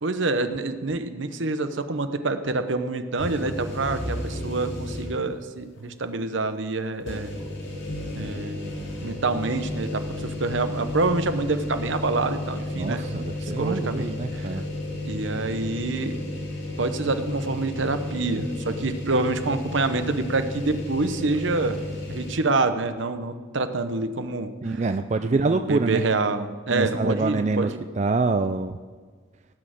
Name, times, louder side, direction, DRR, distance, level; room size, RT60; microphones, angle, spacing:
voice 1, 0.0-7.3 8.2-8.7 9.0-13.2 13.6-14.6 15.0-16.2 16.8-21.8 22.1-24.8 25.2-27.8, right 3 dB, 70° right, 9 dB, 0.9 m, -27 dB
sound 1, 3.2-5.3 5.8-5.9 7.0-22.3, left 1 dB, 80° left, 4.7 m, -33 dB
voice 2, 12.8-14.6 24.6-26.0 26.7-28.8, right 3 dB, 35° right, 9 dB, 0.4 m, -26 dB
18.0 x 6.4 x 7.6 m, 1.5 s
head